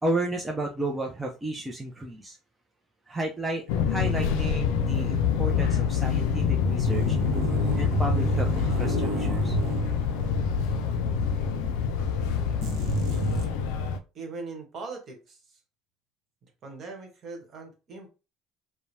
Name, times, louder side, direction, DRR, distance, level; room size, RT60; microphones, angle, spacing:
voice 1, 0.0-2.4 3.1-7.2 7.8-9.5, right 2 dB, 15° right, 0 dB, 0.5 m, -32 dB
Fixed-wing aircraft airplane, 3.7-14.0, left 6 dB, 80° left, 0.4 m, -26 dB
sound 1, 6.9-10.6 10.9-11.0 12.6-13.5, right 4 dB, 65° right, 0.7 m, -30 dB
voice 2, 14.1-15.6 16.4-18.1, right 3 dB, 45° right, 3 dB, 1.2 m, -41 dB
2.9 x 2.1 x 2.6 m, 0.30 s
supercardioid pair, 95°, 0 cm